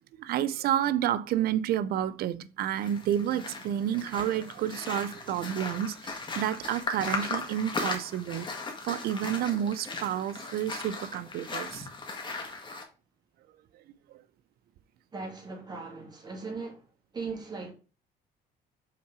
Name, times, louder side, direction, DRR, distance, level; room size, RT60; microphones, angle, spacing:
voice 1, 0.2-8.5 8.8-11.9, right 11 dB, 65° right, 0.5 m, -30 dB
sound 1, 2.7-12.8, left 3 dB, 30° left, 1.7 m, -37 dB
voice 2, 15.1-16.9 17.1-17.7, right 4 dB, 25° right, 2.1 m, -38 dB
5.8 x 3.7 x 4.8 m
cardioid pair, 110°, 17 cm